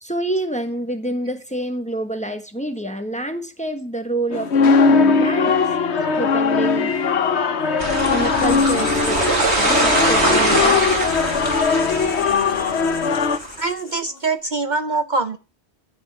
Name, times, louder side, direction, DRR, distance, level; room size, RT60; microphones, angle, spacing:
voice 1, 0.0-5.6 5.9-7.0 8.0-11.1, right 1 dB, 5° left, 6 dB, 1.2 m, -27 dB
sound 1, 4.3-13.4, left 5 dB, 80° left, 1.2 m, -19 dB
sound 2, 7.8-13.5, right 2 dB, 80° right, 3.2 m, -22 dB
Writing, 8.4-14.3, left 3 dB, 60° left, 2.2 m, -37 dB
voice 2, 13.6-15.4, right 3 dB, 45° right, 9 dB, 1.0 m, -23 dB
14.5 x 5.2 x 7.2 m, 0.32 s
omnidirectional pair, 1.1 m